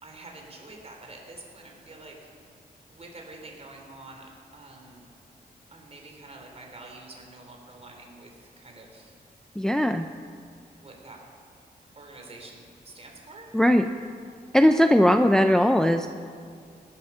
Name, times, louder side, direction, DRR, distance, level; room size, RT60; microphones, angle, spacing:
voice 1, 0.0-2.2 2.4-2.6 2.9-4.2 4.5-5.0 5.7-9.1 10.8-11.2 11.9-13.6, right 2 dB, 40° right, 1 dB, 3.4 m, -47 dB
voice 2, 9.6-10.1 13.5-13.9 14.5-16.1, left 1 dB, 5° left, 7 dB, 0.5 m, -19 dB
18.5 x 11.0 x 6.0 m, 2.3 s
wide cardioid pair, 110°, 16 cm